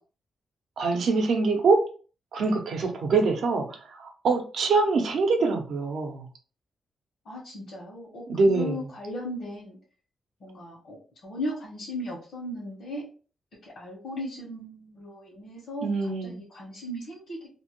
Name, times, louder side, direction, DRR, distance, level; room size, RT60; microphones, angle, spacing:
voice 1, 0.8-1.9 2.3-6.3 8.3-8.9 15.8-16.4, right 3 dB, 75° right, 3 dB, 0.7 m, -24 dB
voice 2, 7.2-9.8 10.4-13.0 13.6-15.9 16.2-17.5, left 1 dB, 80° left, -4 dB, 1.2 m, -37 dB
2.8 x 2.2 x 3.0 m, 0.39 s
cardioid pair, 90°, 0 cm